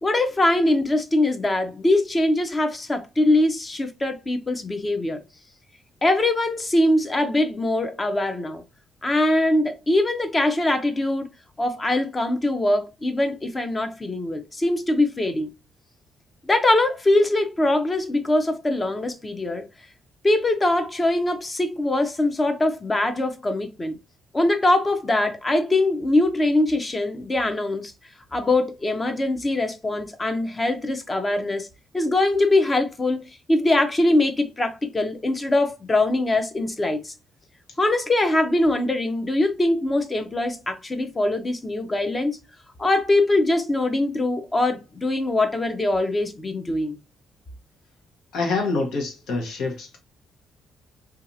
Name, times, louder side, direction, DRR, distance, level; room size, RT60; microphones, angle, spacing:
voice 1, 0.0-5.2 6.0-8.6 9.0-11.3 11.6-15.5 16.5-19.6 20.2-24.0 24.3-27.9 28.3-31.7 31.9-37.1 37.8-42.4 42.8-47.0, left 2 dB, 25° left, 0.6 m, -22 dB
voice 2, 48.3-50.0, left 3 dB, 80° left, 1.0 m, -26 dB
2.7 x 2.4 x 2.5 m
cardioid pair, 90°, 0 cm